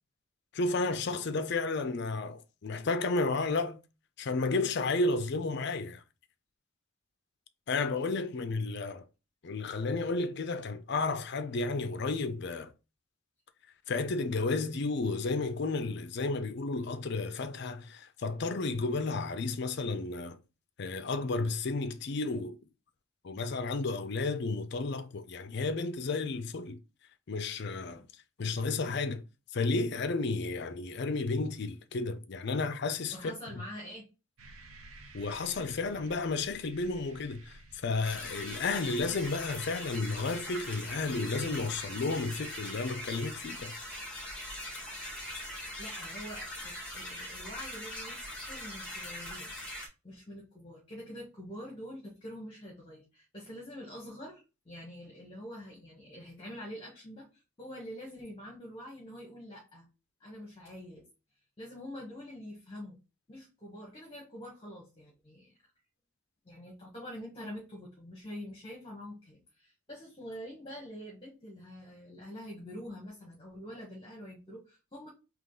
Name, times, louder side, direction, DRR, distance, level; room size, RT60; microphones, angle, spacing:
voice 1, 0.5-3.8 4.2-6.0 7.7-9.1 9.4-12.7 13.9-20.4 20.8-22.6 23.2-26.8 27.3-28.1 28.4-29.2 29.5-33.3 35.1-43.8, left 3 dB, 55° left, 0.5 m, -32 dB
voice 2, 33.1-34.1 45.4-45.5 45.8-49.5 50.0-59.9 60.2-61.1 61.6-63.0 63.3-65.5 66.4-75.1, equal, 25° left, 1.2 m, -45 dB
sound 1, 34.4-39.9, right 2 dB, 75° right, 0.9 m, -53 dB
sound 2, 38.0-49.9, left 1 dB, 5° left, 1.5 m, -41 dB
3.8 x 3.0 x 3.7 m
head